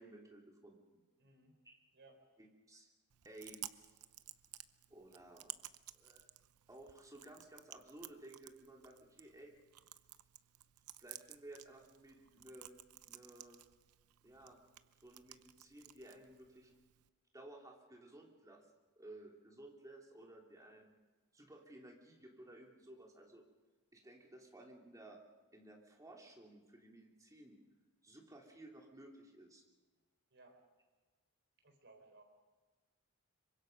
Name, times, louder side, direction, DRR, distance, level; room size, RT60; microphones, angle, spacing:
voice 1, 0.0-1.0 1.6-1.7 2.4-2.9 3.2-3.9 4.9-5.5 5.9-6.3 6.7-9.5 11.0-12.8 13.1-13.6 14.2-14.6 15.0-16.7 17.3-18.6 19.0-20.9 21.3-23.4 23.9-25.2 25.5-27.5 28.0-29.6, right 1 dB, 15° right, 0 dB, 3.1 m, -56 dB
voice 2, 1.2-1.6 1.9-2.2 30.3-30.6 31.6-32.2, right 2 dB, 55° right, 4 dB, 4.4 m, -62 dB
Chewing mastication, 3.1-17.1, right 14 dB, 80° right, 0.8 m, -55 dB
26.0 x 24.0 x 5.4 m, 1.3 s
head